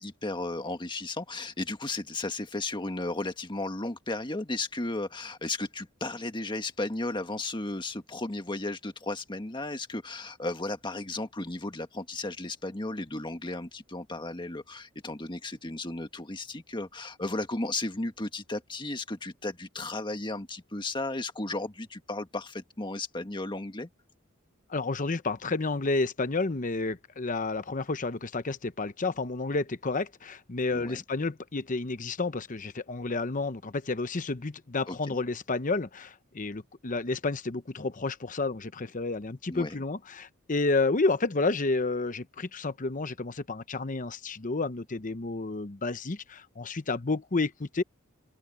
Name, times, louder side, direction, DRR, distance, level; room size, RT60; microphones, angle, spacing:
voice 1, 0.0-23.9 30.7-31.0 34.9-35.0 39.5-39.8, left 2 dB, 25° left, 1.6 m, -34 dB
voice 2, 24.7-47.8, left 3 dB, 40° left, 0.9 m, -30 dB
open air
head